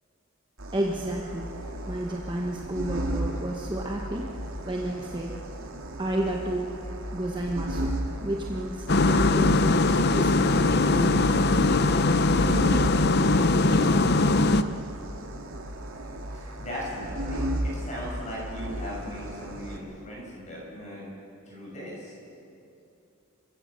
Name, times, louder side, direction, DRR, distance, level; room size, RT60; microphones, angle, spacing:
sound 1, 0.6-19.8, right 1 dB, 70° right, 2.1 m, -35 dB
voice 1, 0.7-1.5 1.9-4.3 4.6-5.4 6.0-6.7 7.1-7.9 8.2-11.4, right 1 dB, 20° right, 0 dB, 1.2 m, -31 dB
sound 2, 8.9-14.6, left 2 dB, 50° left, 0.7 m, -21 dB
voice 2, 16.3-21.1 21.5-22.1, equal, 30° left, -4 dB, 7.5 m, -38 dB
27.5 x 16.0 x 6.7 m, 2.7 s
head